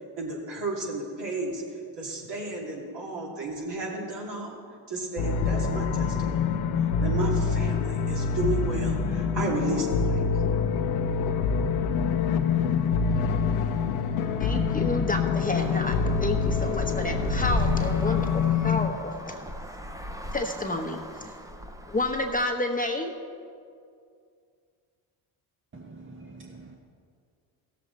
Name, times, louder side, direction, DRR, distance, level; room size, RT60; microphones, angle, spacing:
voice 1, 0.2-1.6 2.0-4.6 4.9-6.4 7.0-10.2, right 2 dB, 60° right, -3 dB, 3.2 m, -33 dB
sound 1, 5.2-18.9, left 6 dB, 90° left, 0.7 m, -26 dB
voice 2, 14.4-19.3 20.3-21.0 21.9-23.1, left 2 dB, 15° left, 3 dB, 1.1 m, -30 dB
Traffic noise roadway noise, 15.6-22.5, equal, 5° right, 0.8 m, -36 dB
voice 3, 25.7-26.8, right 3 dB, 25° right, 1 dB, 1.1 m, -46 dB
16.0 x 7.4 x 4.2 m, 2.3 s
supercardioid pair, 60°, 47 cm